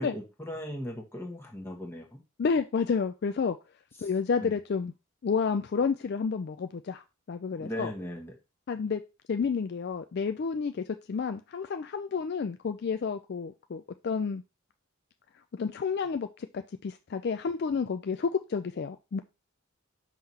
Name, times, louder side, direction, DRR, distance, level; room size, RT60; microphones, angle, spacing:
voice 1, 0.0-2.2 4.0-4.1 4.4-4.5 7.6-8.3, equal, 10° left, 1.3 m, -38 dB
voice 2, 2.4-3.6 4.0-4.9 5.2-7.9 8.7-9.0 9.3-14.4 15.5-19.2, left 5 dB, 45° left, 0.3 m, -30 dB
5.8 x 3.0 x 5.5 m
head